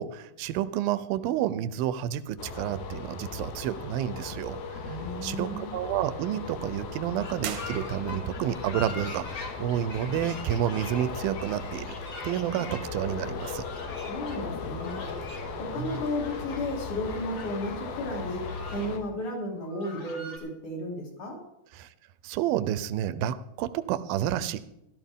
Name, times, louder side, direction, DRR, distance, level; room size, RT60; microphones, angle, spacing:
voice 1, 0.0-4.6 4.9-5.0 5.2-12.0 12.2-13.6 15.8-16.0 21.8-21.9 22.2-24.6, right 11 dB, 80° right, 14 dB, 2.4 m, -30 dB
sound 1, 2.4-19.0, left 4 dB, 75° left, 3.2 m, -37 dB
voice 2, 4.8-5.7 14.1-15.0 15.6-21.4, left 1 dB, 55° left, -1 dB, 4.5 m, -34 dB
sound 2, 7.2-12.8 13.4-14.4 14.7-15.6 15.8-16.6 17.0-17.7 18.1-18.9 19.2-19.3 19.6-20.4, left 3 dB, 30° left, 3.0 m, -43 dB
sound 3, 7.4-8.4, right 9 dB, 65° right, 1.8 m, -39 dB
15.5 x 13.0 x 3.6 m, 0.83 s
omnidirectional pair, 4.3 m